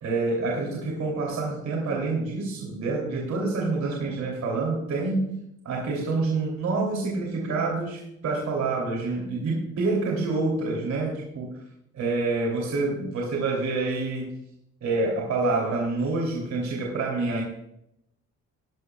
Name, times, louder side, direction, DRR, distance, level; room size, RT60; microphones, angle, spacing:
voice 1, 0.0-5.3 5.6-11.6 11.9-14.3 14.8-17.4, right 3 dB, 65° right, -2 dB, 3.2 m, -27 dB
18.0 x 12.0 x 2.4 m, 0.80 s
cardioid pair, 90°, 30 cm